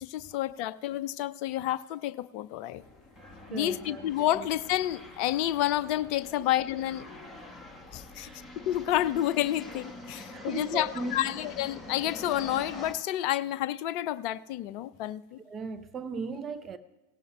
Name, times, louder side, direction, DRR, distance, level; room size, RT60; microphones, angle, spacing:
voice 1, 0.0-2.8 3.5-7.0 7.9-8.3 8.6-15.4, left 13 dB, 40° left, 0.4 m, -30 dB
sound 1, 2.8-12.9, left 2 dB, 5° left, 1.3 m, -45 dB
voice 2, 3.5-4.5 6.3-6.5 8.1-8.4 10.1-11.4 15.4-16.8, right 4 dB, 25° right, 0.6 m, -38 dB
18.0 x 17.0 x 2.3 m
figure-of-eight pair, 90°, 0 cm